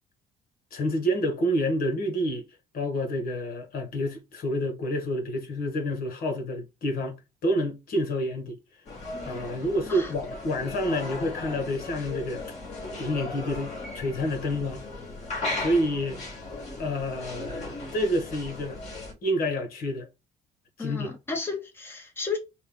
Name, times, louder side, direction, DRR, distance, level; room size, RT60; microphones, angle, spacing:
voice 1, 0.7-2.4 2.7-8.6 9.2-12.4 13.0-14.8 15.6-16.2 16.8-18.8 19.2-20.1 20.8-21.1, equal, 60° left, 1.6 m, -28 dB
sound 1, 8.8-19.1, left 2 dB, 40° left, 2.9 m, -37 dB
voice 2, 20.8-22.4, left 4 dB, 15° left, 1.2 m, -33 dB
5.4 x 2.5 x 3.8 m
cardioid pair, 110°, 17 cm